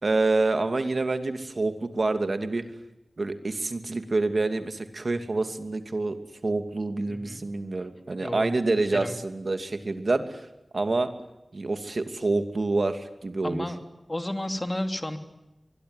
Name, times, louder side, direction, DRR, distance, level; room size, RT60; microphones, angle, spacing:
voice 1, 0.0-2.6 3.2-6.2 6.4-10.4 10.7-11.1 11.5-13.6, right 3 dB, 60° right, 8 dB, 2.7 m, -27 dB
voice 2, 7.1-7.4 8.2-8.5 8.8-9.2 13.4-13.8 14.1-15.2, left 1 dB, 25° left, 6 dB, 3.0 m, -32 dB
24.0 x 22.5 x 9.8 m, 0.94 s
wide cardioid pair, 75°, 0 cm